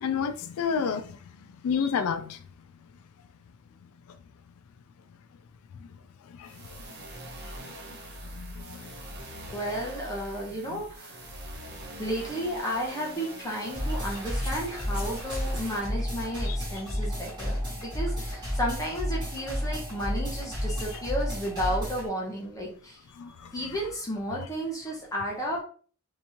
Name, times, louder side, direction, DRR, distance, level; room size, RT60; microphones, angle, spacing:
voice 1, 0.0-1.2 1.6-2.4 6.3-6.5 7.6-7.8 8.3-8.9 16.5-16.6 23.2-23.5, left 6 dB, 75° left, 0.3 m, -30 dB
sound 1, 6.4-15.8, right 2 dB, 45° right, 0.9 m, -42 dB
voice 2, 9.5-11.3 12.0-23.0 23.4-25.6, equal, 15° left, 0.7 m, -33 dB
sound 2, 13.7-22.1, equal, 20° right, 1.8 m, -32 dB
sound 3, 14.4-15.6, equal, 5° right, 1.5 m, -45 dB
3.4 x 2.8 x 2.8 m
head